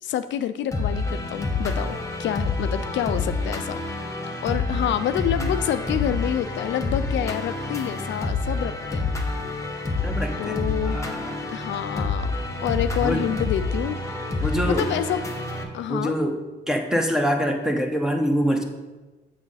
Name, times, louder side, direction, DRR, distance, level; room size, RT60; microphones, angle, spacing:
voice 1, 0.0-3.8 4.4-9.1 10.4-11.0 11.5-12.3 12.6-14.0 14.7-15.3 15.7-16.2, left 10 dB, 70° left, 10 dB, 0.4 m, -27 dB
sound 1, 0.7-15.6, left 3 dB, 15° left, 1.3 m, -28 dB
voice 2, 10.0-11.3 13.0-13.4 14.4-14.9 15.9-16.4 16.7-18.6, equal, 5° right, 3 dB, 1.0 m, -25 dB
7.0 x 6.3 x 4.1 m, 1.2 s
cardioid pair, 90°, 20 cm